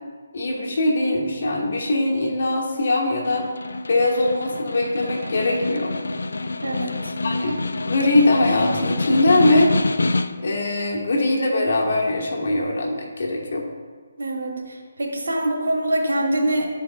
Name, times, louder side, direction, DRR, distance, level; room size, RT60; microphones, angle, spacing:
voice 1, 0.3-3.5 3.9-5.9 7.2-7.6 7.8-9.7 10.4-13.6, left 2 dB, 60° left, -1 dB, 1.4 m, -21 dB
Snare drum, 3.1-10.6, left 2 dB, 80° left, 0.3 m, -26 dB
voice 2, 6.6-7.1 14.2-16.7, right 1 dB, 80° right, 1 dB, 1.3 m, -24 dB
10.5 x 4.5 x 2.4 m, 1.5 s
hypercardioid pair, 155°, 0 cm